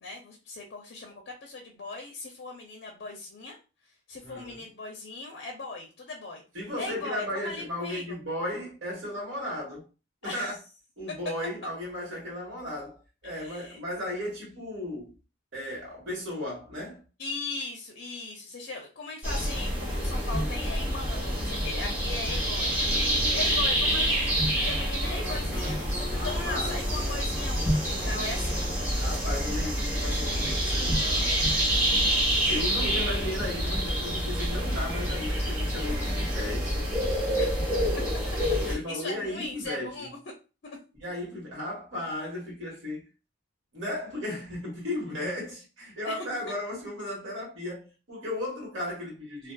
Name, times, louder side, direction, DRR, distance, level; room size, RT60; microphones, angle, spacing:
voice 1, 0.0-3.6 4.1-6.4 6.8-8.2 10.2-10.5 13.2-13.8 17.2-28.7 37.4-37.5 38.6-40.1 40.6-40.8 46.0-46.2, left 3 dB, 55° left, 0.4 m, -39 dB
voice 2, 4.2-4.6 6.5-9.9 10.2-10.6 11.0-15.2 15.5-17.0 23.9-24.4 26.1-26.8 29.0-31.4 32.5-36.8 38.7-40.1 41.0-43.0 43.7-49.5, left 1 dB, 70° right, 1.3 m, -35 dB
sound 1, 19.2-38.8, equal, 10° right, 0.9 m, -27 dB
2.5 x 2.2 x 2.2 m
head